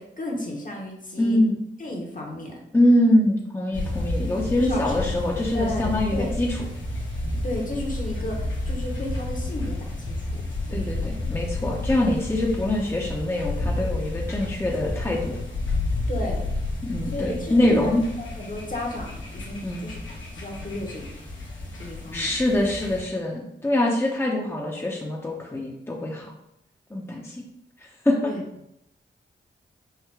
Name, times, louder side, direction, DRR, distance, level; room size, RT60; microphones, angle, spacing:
voice 1, 0.0-1.4 1.8-2.6 4.6-6.3 7.4-10.4 10.7-11.0 16.1-16.5 17.1-20.0 20.3-21.1 21.8-22.3 28.2-28.4, left 1 dB, 45° left, 0 dB, 1.1 m, -34 dB
voice 2, 1.2-1.6 2.7-6.6 10.7-15.4 16.8-18.0 19.6-19.9 22.1-26.3 26.9-27.4 28.0-28.3, left 1 dB, 10° left, -2 dB, 0.7 m, -24 dB
sound 1, 3.7-23.0, left 2 dB, 75° left, 1.1 m, -31 dB
4.7 x 2.2 x 3.4 m, 0.80 s
cardioid pair, 50°, 20 cm